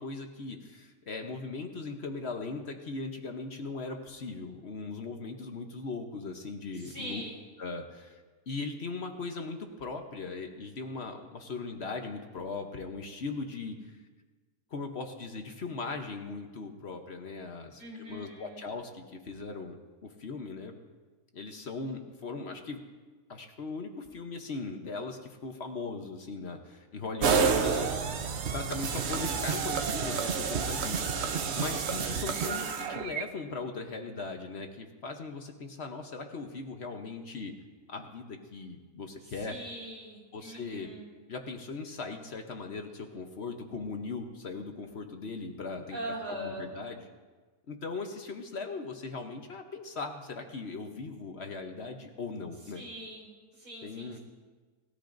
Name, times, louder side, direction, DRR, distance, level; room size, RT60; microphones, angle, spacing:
voice 1, 0.0-7.2 7.6-14.0 14.7-19.8 20.0-20.7 21.3-22.8 23.3-27.9 28.5-37.5 37.9-39.6 40.3-40.9 41.3-46.0 46.3-47.0 47.7-52.8 53.8-54.2, left 4 dB, 50° left, 4 dB, 1.0 m, -39 dB
voice 2, 6.8-7.4 17.8-18.6 27.4-27.9 39.2-41.1 45.9-46.7 52.7-54.2, right 1 dB, 70° right, -4 dB, 4.6 m, -41 dB
sound 1, 27.2-33.2, right 5 dB, 55° right, 0.8 m, -29 dB
19.0 x 13.5 x 2.6 m, 1.4 s
omnidirectional pair, 1.7 m